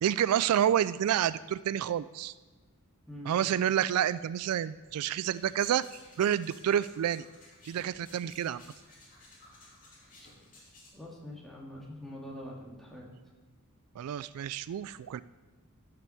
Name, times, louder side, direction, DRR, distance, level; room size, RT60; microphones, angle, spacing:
voice 1, 0.0-2.3 3.3-5.8 6.2-7.2 7.7-8.6 14.0-15.2, right 10 dB, 80° right, 18 dB, 0.3 m, -29 dB
voice 2, 3.1-3.4 10.9-13.1, left 1 dB, ahead, -3 dB, 2.0 m, -44 dB
sound 1, 5.3-10.9, left 2 dB, 40° left, 2.9 m, -56 dB
12.0 x 5.9 x 6.9 m, 1.3 s
head